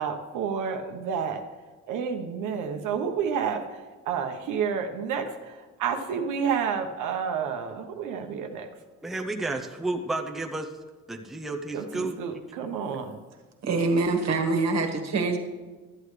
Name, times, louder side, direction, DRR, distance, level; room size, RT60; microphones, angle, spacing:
voice 1, 0.0-1.4 1.9-8.7 11.7-13.2, right 7 dB, 80° right, 5 dB, 1.0 m, -30 dB
voice 2, 9.0-10.7 11.1-12.2, right 2 dB, ahead, 3 dB, 0.6 m, -31 dB
voice 3, 13.6-15.4, right 3 dB, 60° right, 3 dB, 1.5 m, -24 dB
13.0 x 8.7 x 3.2 m, 1.4 s
cardioid pair, 120°, 31 cm